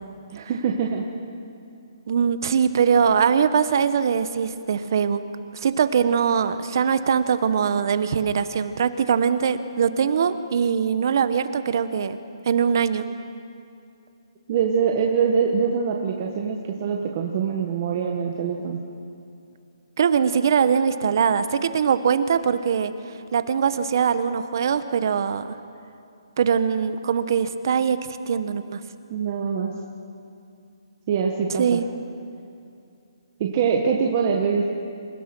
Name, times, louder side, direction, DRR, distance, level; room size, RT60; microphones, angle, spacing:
voice 1, 0.3-1.0 14.5-18.8 29.1-29.7 31.1-31.8 33.4-34.6, right 6 dB, 30° right, 0 dB, 1.4 m, -24 dB
voice 2, 2.1-5.2 5.5-12.2 12.4-13.1 20.0-22.9 23.3-25.5 26.4-28.0 28.3-28.8 31.6-31.9, right 7 dB, 45° right, 12 dB, 1.0 m, -22 dB
27.5 x 16.5 x 6.2 m, 2.6 s
hypercardioid pair, 170°, 3 cm